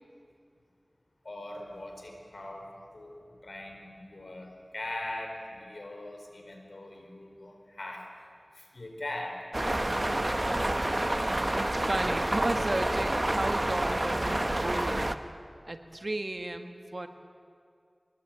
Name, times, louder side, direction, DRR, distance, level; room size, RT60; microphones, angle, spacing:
voice 1, 1.2-8.1 8.5-9.4, left 1 dB, 80° left, 2 dB, 4.6 m, -41 dB
sound 1, 9.5-15.2, right 1 dB, 35° right, 1.1 m, -28 dB
voice 2, 11.1-15.2 15.7-17.1, right 2 dB, 55° right, 6 dB, 1.7 m, -34 dB
24.0 x 21.0 x 9.3 m, 2.3 s
wide cardioid pair, 45°, 0 cm